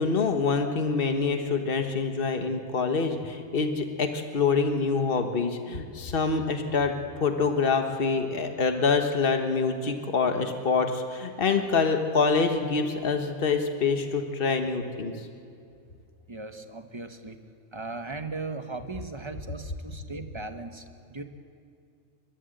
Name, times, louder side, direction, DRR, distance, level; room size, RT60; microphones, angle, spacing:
voice 1, 0.0-6.9 7.2-15.1, left 4 dB, 45° left, 5 dB, 1.5 m, -26 dB
voice 2, 16.3-17.4 17.7-20.8 21.1-21.2, right 3 dB, 25° right, 7 dB, 1.1 m, -37 dB
29.5 x 12.5 x 7.9 m, 2.5 s
omnidirectional pair, 1.3 m